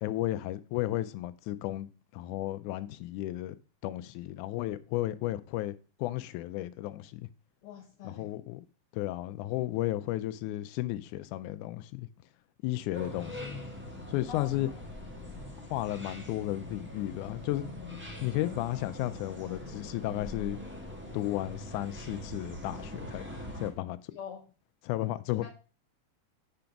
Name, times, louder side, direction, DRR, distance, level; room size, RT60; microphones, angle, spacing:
voice 1, 0.0-3.6 3.8-5.7 6.0-7.3 8.0-8.6 8.9-12.1 12.6-13.6 14.1-14.7 15.7-17.7 18.2-20.6 21.1-23.3 23.6-24.0 24.9-25.5, left 15 dB, 90° left, 2.0 m, -33 dB
voice 2, 7.6-8.3 14.3-14.9 24.1-24.5 25.4-25.5, left 7 dB, 65° left, 1.4 m, -44 dB
sound 1, 12.9-23.7, left 1 dB, 10° right, 0.6 m, -42 dB
6.0 x 5.2 x 5.7 m
omnidirectional pair, 3.4 m